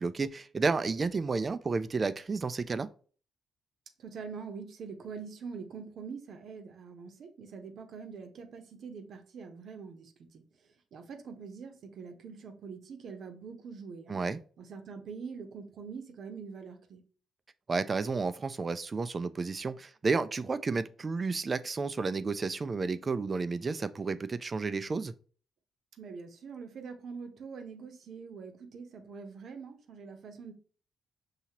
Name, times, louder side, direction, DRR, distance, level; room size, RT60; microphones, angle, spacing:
voice 1, 0.0-2.9 14.1-14.4 17.7-25.1, right 4 dB, 35° right, 0.4 m, -31 dB
voice 2, 4.0-10.4 10.9-14.2 14.6-17.0 26.0-30.5, right 5 dB, 60° right, 0.8 m, -44 dB
5.8 x 2.8 x 2.9 m
supercardioid pair, 55°, 0 cm